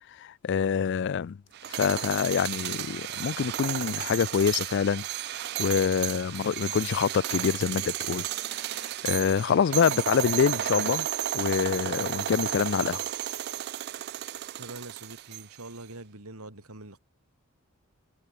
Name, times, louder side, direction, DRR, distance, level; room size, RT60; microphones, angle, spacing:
voice 1, 0.2-1.4 1.7-8.2 8.5-11.1 11.3-13.0, left 7 dB, 55° left, 0.3 m, -26 dB
sound 1, 1.5-15.7, right 12 dB, 45° right, 0.3 m, -33 dB
voice 2, 14.6-17.0, right 2 dB, 80° right, 3.6 m, -44 dB
head